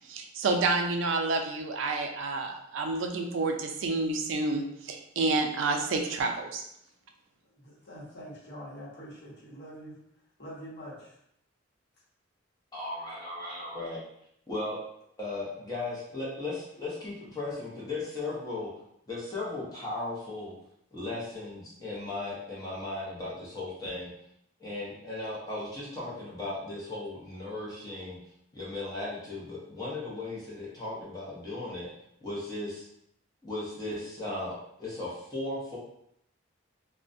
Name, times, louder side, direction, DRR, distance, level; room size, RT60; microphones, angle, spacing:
voice 1, 0.1-6.6, right 3 dB, 65° right, 4 dB, 0.3 m, -29 dB
voice 2, 7.6-10.0 10.4-11.2, equal, 55° left, -7 dB, 1.0 m, -44 dB
voice 3, 12.7-14.0 14.5-14.8 15.2-18.7 19.1-20.5 20.9-24.1 24.6-28.2 28.5-31.9 32.2-32.8 33.4-35.8, left 2 dB, 20° left, -7 dB, 0.7 m, -36 dB
2.3 x 2.1 x 2.5 m, 0.73 s
head